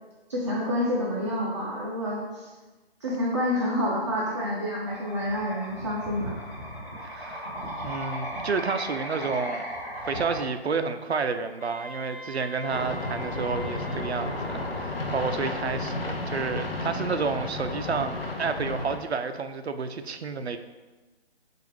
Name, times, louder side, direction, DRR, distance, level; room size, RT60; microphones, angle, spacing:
voice 1, 0.3-2.5 3.0-6.4, left 1 dB, 30° right, -5 dB, 0.5 m, -28 dB
sound 1, 4.8-10.4, equal, 15° left, 0.9 m, -36 dB
voice 2, 7.1-7.5 7.8-9.7 10.0-20.6, right 5 dB, 90° right, 9 dB, 0.5 m, -30 dB
Wind instrument woodwind instrument, 11.6-15.8, left 1 dB, 50° left, 1.1 m, -44 dB
sound 2, 12.7-19.0, left 2 dB, 65° left, 0.7 m, -32 dB
6.1 x 2.5 x 3.3 m, 1.2 s
figure-of-eight pair, 140°, 31 cm